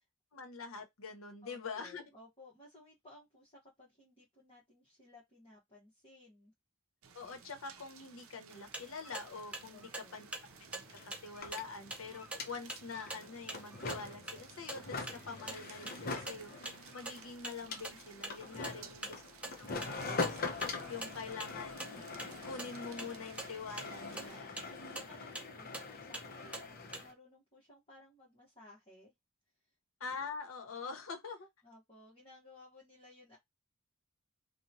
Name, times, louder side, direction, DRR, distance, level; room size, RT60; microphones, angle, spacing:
voice 1, 0.3-2.0 7.1-10.3 10.7-19.2 19.6-22.0 22.4-24.6 30.0-31.5, left 4 dB, 75° left, 0.8 m, -45 dB
voice 2, 1.4-6.5 9.7-10.2 18.7-19.2 24.1-29.1 31.6-33.4, left 2 dB, 25° left, 1.0 m, -59 dB
sound 1, 7.0-24.4, right 7 dB, 75° right, 0.5 m, -57 dB
sound 2, 8.5-27.1, right 2 dB, 5° right, 0.5 m, -47 dB
sound 3, 10.2-10.3 10.5-27.1, left 3 dB, 45° left, 0.6 m, -43 dB
2.9 x 2.2 x 2.6 m
head